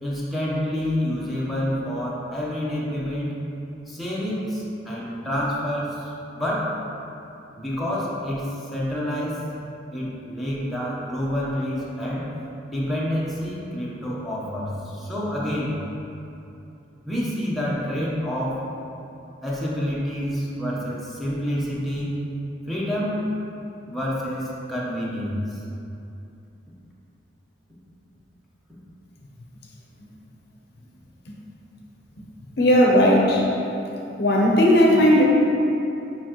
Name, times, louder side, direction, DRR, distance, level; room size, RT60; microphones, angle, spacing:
voice 1, 0.0-3.4 3.9-6.7 7.5-9.4 9.9-12.3 12.7-15.8 17.0-18.7 19.4-22.1 22.7-23.3 23.9-25.6, equal, ahead, -7 dB, 0.9 m, -28 dB
voice 2, 32.6-33.5 34.2-35.2, equal, 60° left, -2 dB, 0.8 m, -16 dB
7.0 x 5.4 x 3.0 m, 2.8 s
head